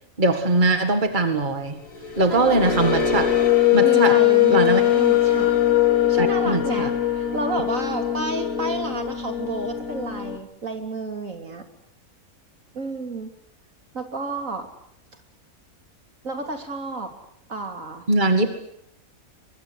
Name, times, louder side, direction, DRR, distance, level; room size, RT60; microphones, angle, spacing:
voice 1, 0.2-1.8 2.2-3.3 3.7-4.2 4.5-4.8 6.2-6.9 18.1-18.6, right 2 dB, 35° right, 7 dB, 2.1 m, -21 dB
sound 1, 1.9-10.4, left 11 dB, 70° left, 2.9 m, -21 dB
voice 2, 3.8-5.5 6.1-11.7 12.7-13.3 13.9-14.7 16.2-17.1 17.5-18.1, right 3 dB, 65° right, 5 dB, 3.5 m, -31 dB
23.5 x 23.5 x 8.2 m, 0.74 s
omnidirectional pair, 1.5 m